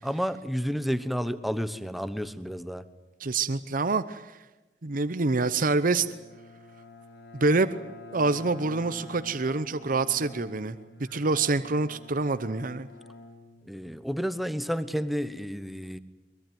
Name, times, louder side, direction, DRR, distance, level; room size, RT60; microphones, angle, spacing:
voice 1, 0.0-2.8 13.7-16.0, equal, ahead, 13 dB, 1.0 m, -31 dB
voice 2, 3.2-4.4 4.8-6.1 7.3-7.7 8.1-10.8 11.1-12.9, right 3 dB, 50° right, 12 dB, 0.8 m, -26 dB
Bowed string instrument, 5.7-14.2, left 3 dB, 70° left, 4.7 m, -48 dB
23.0 x 21.5 x 9.3 m, 1.1 s
head